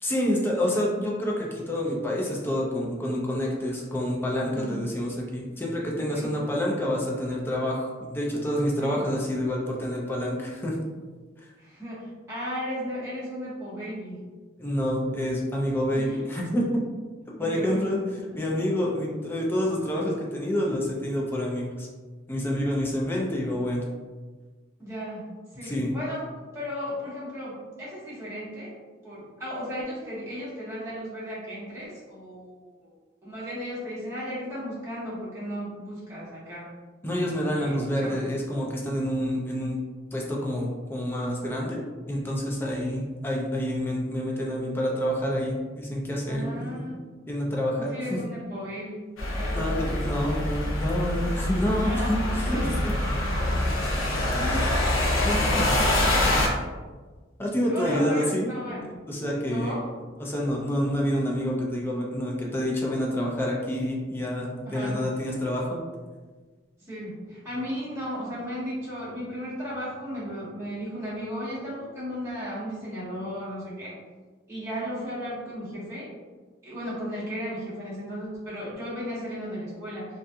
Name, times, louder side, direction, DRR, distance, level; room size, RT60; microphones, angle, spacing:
voice 1, 0.0-10.8 11.4-11.5 14.6-16.6 17.4-18.0 18.3-21.9 22.3-23.8 25.6-25.9 37.0-39.8 40.1-41.8 42.1-47.0 47.3-47.9 49.5-52.9 55.2-55.8 57.4-58.5 59.1-59.8 60.2-65.8, equal, 10° left, -3 dB, 0.4 m, -28 dB
voice 2, 4.5-4.8 6.1-6.3 8.8-9.0 11.6-14.2 15.9-16.2 17.4-17.8 18.3-18.4 24.8-25.3 25.5-26.2 26.5-28.7 29.0-32.9 33.2-36.7 37.5-38.2 46.3-46.9 47.8-49.0 49.3-50.4 51.8-52.9 53.9-54.9 57.7-58.8 59.5-59.9 64.7-65.0 66.8-73.9 74.5-76.1 76.6-80.1, equal, 15° right, -10 dB, 1.1 m, -35 dB
sound 1, 49.2-56.5, left 1 dB, 85° left, 0.6 m, -25 dB
2.6 x 2.4 x 2.2 m, 1.4 s
head